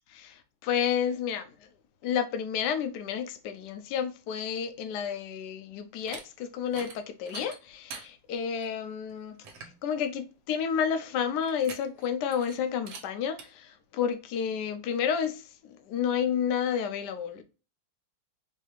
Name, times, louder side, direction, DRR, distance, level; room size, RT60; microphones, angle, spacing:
voice 1, 0.2-1.7 2.0-17.4, left 8 dB, 70° left, 1.0 m, -31 dB
sound 1, 5.9-6.2 6.7-7.0 7.3-8.1 8.6-8.7 9.1-9.2 9.4-9.8 11.4-12.1 12.3-12.6 12.9-13.0 13.4-13.5, right 5 dB, 70° right, 1.6 m, -43 dB
4.7 x 2.7 x 3.2 m
omnidirectional pair, 2.3 m